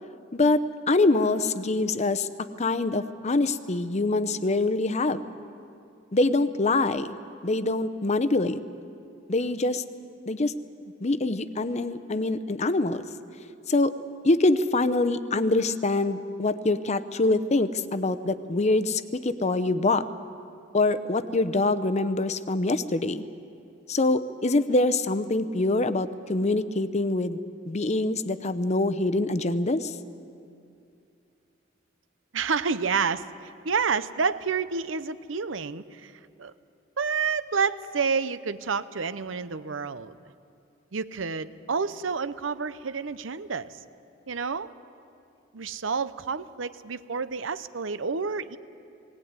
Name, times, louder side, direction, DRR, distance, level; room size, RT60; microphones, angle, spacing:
voice 1, 0.3-2.3 2.6-5.2 6.1-7.1 7.4-8.6 9.3-9.8 10.3-10.5 11.0-13.0 13.7-13.9 14.2-20.0 20.7-23.2 23.9-27.4 27.7-30.0, left 2 dB, 35° left, 11 dB, 0.7 m, -24 dB
voice 2, 32.3-36.1 36.4-36.5 37.0-40.1 40.9-43.8 44.3-44.7 45.5-48.6, right 5 dB, 85° right, 14 dB, 0.8 m, -29 dB
19.5 x 18.0 x 9.6 m, 2.5 s
head